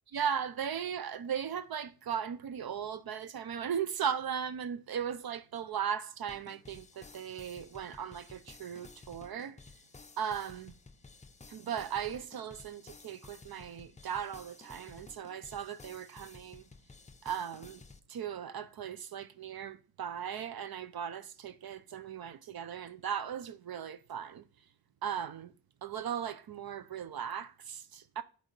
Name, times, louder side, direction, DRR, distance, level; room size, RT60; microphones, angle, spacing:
voice 1, 0.1-9.6 10.2-10.7 11.5-16.6 17.2-17.8 18.1-24.4 25.0-25.5 25.8-28.2, right 8 dB, 60° right, 0.6 m, -37 dB
sound 1, 6.3-18.0, left 4 dB, 20° left, 0.5 m, -54 dB
8.1 x 4.7 x 4.0 m
wide cardioid pair, 165°, 41 cm